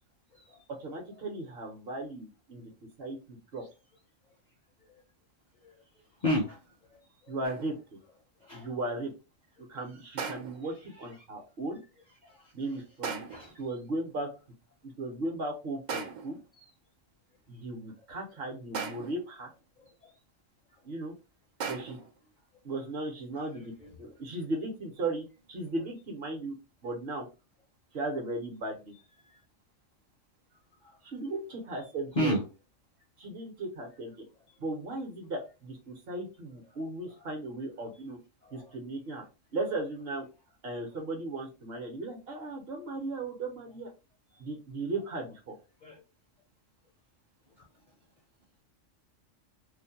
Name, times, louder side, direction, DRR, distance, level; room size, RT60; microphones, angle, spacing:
voice 1, 0.8-2.7 3.0-3.6 7.3-7.7 8.5-9.1 9.7-11.8 12.5-13.2 13.6-14.3 15.0-16.4 17.5-19.5 20.8-21.1 21.6-22.0 22.6-23.7 24.0-26.5 26.8-27.2 27.9-28.9 31.0-32.4 33.2-34.1 34.6-38.2 38.5-39.2 39.5-40.3 40.6-43.9 44.4-45.5, right 2 dB, 55° right, 2 dB, 0.9 m, -36 dB
voice 2, 6.2-6.6 7.3-7.4 8.5-8.7 12.3-12.4 13.3-13.6 16.6-16.7 23.3-23.4 23.8-24.0 32.1-32.4 38.5-38.7 45.8-46.0, equal, 50° left, -1 dB, 0.6 m, -31 dB
sound 1, 7.4-7.9 10.2-10.7 13.0-13.5 15.9-16.5 18.7-19.3 21.6-22.2, right 5 dB, 85° right, 0.4 m, -38 dB
2.5 x 2.1 x 2.7 m, 0.29 s
omnidirectional pair, 1.3 m